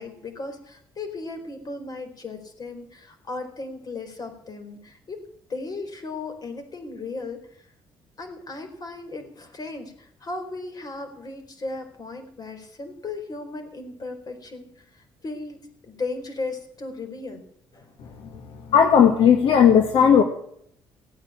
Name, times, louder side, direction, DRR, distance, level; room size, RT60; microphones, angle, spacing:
voice 1, 0.0-5.2 5.5-7.4 8.2-14.7 14.9-17.4 17.7-18.2, left 3 dB, 45° left, 6 dB, 4.5 m, -36 dB
voice 2, 18.7-20.2, left 7 dB, 70° left, 5 dB, 1.6 m, -15 dB
16.5 x 9.2 x 8.6 m, 0.68 s
cardioid pair, 90°, 9 cm